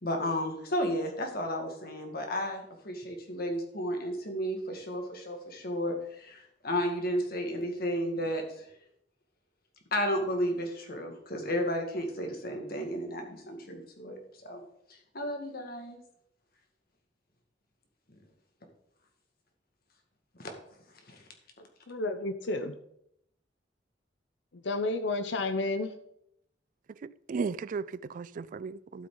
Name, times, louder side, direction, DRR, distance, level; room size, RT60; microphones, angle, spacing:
voice 1, 0.0-8.7 9.9-14.2 14.4-14.6 14.9-16.0 20.4-20.5 21.1-21.2, equal, 55° left, 2.1 m, -33 dB
voice 2, 21.9-22.7 24.6-25.9, left 2 dB, 80° left, 0.8 m, -31 dB
voice 3, 27.0-29.1, right 5 dB, 45° right, 0.3 m, -35 dB
12.5 x 7.5 x 4.0 m
head